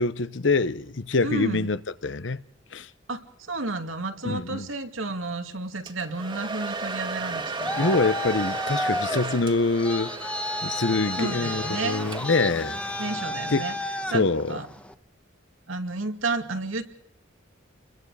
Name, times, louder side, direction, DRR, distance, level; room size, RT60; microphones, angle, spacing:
voice 1, 0.0-2.4 2.7-2.9 4.2-4.7 7.8-10.1 10.6-12.8 13.5-13.6 14.1-14.6, left 3 dB, 65° left, 0.9 m, -25 dB
voice 2, 1.2-1.7 3.1-3.2 3.5-7.8 11.2-12.1 13.0-13.7 14.1-14.2 14.5-14.7 15.7-16.8, right 3 dB, 85° right, 2.3 m, -31 dB
Domestic sounds home sounds, 5.9-12.6, right 3 dB, 25° right, 1.6 m, -35 dB
Traffic noise roadway noise, 7.2-14.9, left 1 dB, 5° left, 1.1 m, -32 dB
29.5 x 22.0 x 4.9 m
head